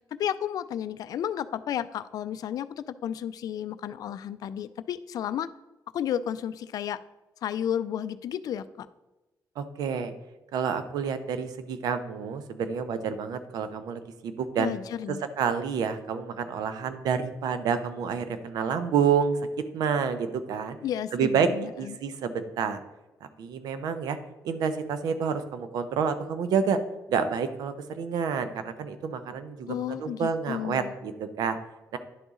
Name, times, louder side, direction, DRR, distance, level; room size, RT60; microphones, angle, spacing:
voice 1, 0.1-5.5 5.9-7.0 7.4-8.9 14.6-15.2 20.8-22.0 29.7-30.9, left 10 dB, 70° left, 14 dB, 0.4 m, -32 dB
voice 2, 9.6-10.1 10.5-14.7 15.4-19.4 19.7-20.8 21.1-21.5 21.8-22.8 23.2-24.2 24.4-26.8 27.1-31.6 31.9-32.0, right 6 dB, 85° right, 10 dB, 0.6 m, -28 dB
11.0 x 4.0 x 3.7 m, 1.0 s
cardioid pair, 105°, 7 cm